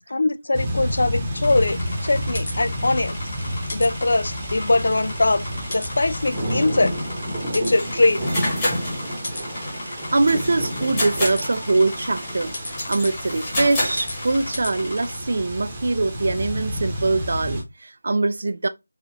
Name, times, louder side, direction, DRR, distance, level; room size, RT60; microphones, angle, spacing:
voice 1, 0.1-3.2 3.7-5.4 5.7-6.9 7.5-8.2, left 2 dB, 65° left, 0.3 m, -21 dB
sound 1, 0.5-17.6, equal, 15° right, 0.9 m, -30 dB
sound 2, 1.4-15.2, left 2 dB, 45° left, 1.3 m, -36 dB
sound 3, 7.7-14.5, left 1 dB, 15° left, 1.3 m, -30 dB
voice 2, 9.8-12.5 12.9-18.7, right 3 dB, 55° right, 0.5 m, -23 dB
4.8 x 2.4 x 2.6 m
figure-of-eight pair, 170°, 0 cm